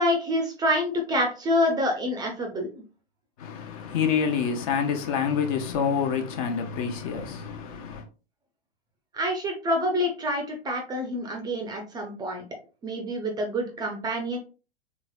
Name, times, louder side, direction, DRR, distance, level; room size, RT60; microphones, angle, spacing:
voice 1, 0.0-2.8 9.1-12.4 12.8-14.4, left 1 dB, 15° right, 0.6 m, -27 dB
voice 2, 3.4-8.1, left 7 dB, 35° left, 0.7 m, -27 dB
4.0 x 3.5 x 2.3 m
figure-of-eight pair, 105°, 31 cm